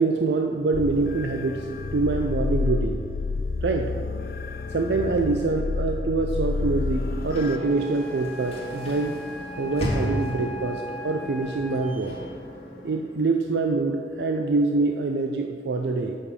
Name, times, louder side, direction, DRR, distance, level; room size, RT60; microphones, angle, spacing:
voice 1, 0.0-3.0 3.6-3.9 4.7-9.2 9.6-12.2 12.8-16.2, right 3 dB, 70° right, 3 dB, 0.5 m, -25 dB
sound 1, 0.7-7.6, left 3 dB, 55° left, 0.4 m, -29 dB
Sliding door / Slam, 6.4-13.4, left 1 dB, 35° left, 1.7 m, -36 dB
Wind instrument woodwind instrument, 7.5-12.1, right 1 dB, 45° right, 1.5 m, -39 dB
8.6 x 6.5 x 5.4 m, 2.4 s
head